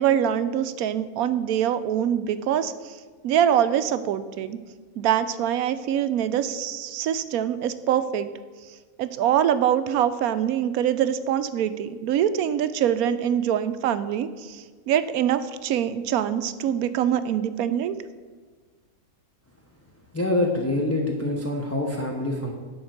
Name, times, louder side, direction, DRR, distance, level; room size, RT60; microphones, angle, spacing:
voice 1, 0.0-3.0 3.2-4.6 5.0-8.3 9.0-17.9, right 9 dB, 85° right, 12 dB, 1.1 m, -24 dB
voice 2, 20.1-22.5, left 1 dB, 10° left, -1 dB, 0.8 m, -25 dB
11.0 x 4.3 x 7.9 m, 1.5 s
omnidirectional pair, 1.5 m